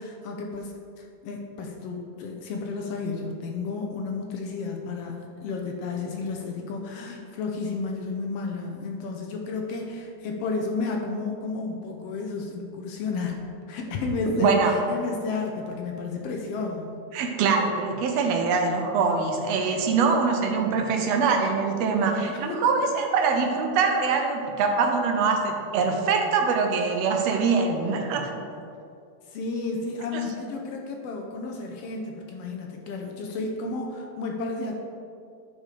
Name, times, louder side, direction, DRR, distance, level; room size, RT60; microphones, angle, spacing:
voice 1, 0.0-13.4 13.7-16.9 22.0-22.7 29.3-34.8, left 3 dB, 75° left, 1 dB, 1.5 m, -32 dB
voice 2, 14.4-14.7 17.1-28.3 30.2-30.3, right 5 dB, 75° right, 3 dB, 1.6 m, -23 dB
9.9 x 4.3 x 4.8 m, 2.4 s
omnidirectional pair, 3.4 m